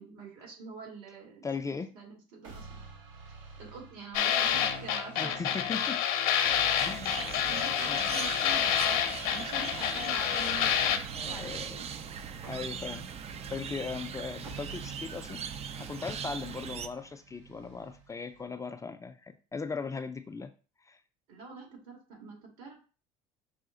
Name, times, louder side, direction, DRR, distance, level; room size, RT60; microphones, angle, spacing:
voice 1, 0.0-2.8 3.6-5.6 7.5-11.9 21.3-22.7, right 4 dB, 75° right, 0 dB, 2.1 m, -46 dB
voice 2, 1.4-1.9 5.2-6.0 6.8-7.3 7.9-8.2 11.1-12.0 12.5-13.1 13.5-15.4 15.8-20.5 20.9-21.0, left 5 dB, 20° left, 9 dB, 0.5 m, -38 dB
sound 1, 2.4-18.4, right 4 dB, 90° right, 1.5 m, -49 dB
sound 2, 4.1-11.0, left 9 dB, 70° left, 0.7 m, -28 dB
sound 3, 6.8-16.9, right 7 dB, 40° right, 0.5 m, -40 dB
5.7 x 2.4 x 3.9 m, 0.36 s
supercardioid pair, 80°, 16 cm